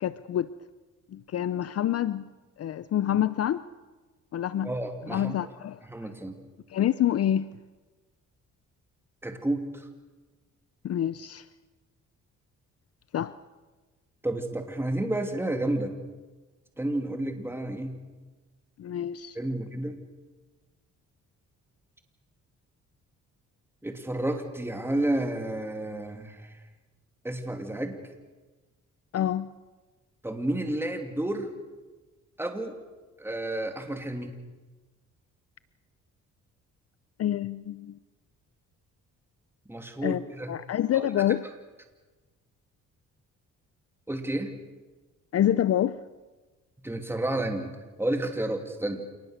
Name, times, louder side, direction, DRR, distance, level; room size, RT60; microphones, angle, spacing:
voice 1, 0.0-0.5 1.1-2.3 2.6-3.6 4.3-4.7 5.0-5.8 6.7-7.5 10.8-11.4 13.1-13.4 18.8-19.4 29.1-29.5 37.2-38.0 40.0-41.4 45.3-46.0, left 11 dB, 55° left, 16 dB, 0.7 m, -27 dB
voice 2, 4.6-5.3 5.9-6.5 9.2-9.8 14.2-16.0 16.8-18.0 19.3-20.0 23.8-26.6 27.2-28.0 30.2-31.5 32.4-32.8 33.2-34.3 39.7-40.5 41.0-41.1 44.1-44.6 46.8-49.0, right 1 dB, 10° right, 5 dB, 2.8 m, -31 dB
27.5 x 19.5 x 6.6 m, 1.2 s
cardioid pair, 90°, 30 cm